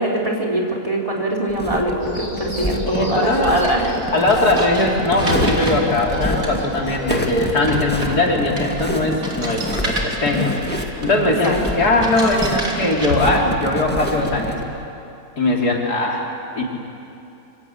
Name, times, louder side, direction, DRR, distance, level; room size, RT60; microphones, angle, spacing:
voice 1, 0.0-3.9 11.4-11.6, right 1 dB, 20° right, -1 dB, 3.9 m, -22 dB
sound 1, 1.5-14.6, left 1 dB, 5° left, 1.4 m, -28 dB
sound 2, 2.0-8.0, left 1 dB, 30° left, 7.2 m, -33 dB
voice 2, 2.9-3.6 4.1-10.7 11.0-14.6 15.4-16.3 16.6-16.7, left 2 dB, 75° left, -1 dB, 3.8 m, -20 dB
sound 3, 3.3-14.8, right 1 dB, 60° right, 3.6 m, -30 dB
25.5 x 25.0 x 8.7 m, 2.8 s
omnidirectional pair, 1.7 m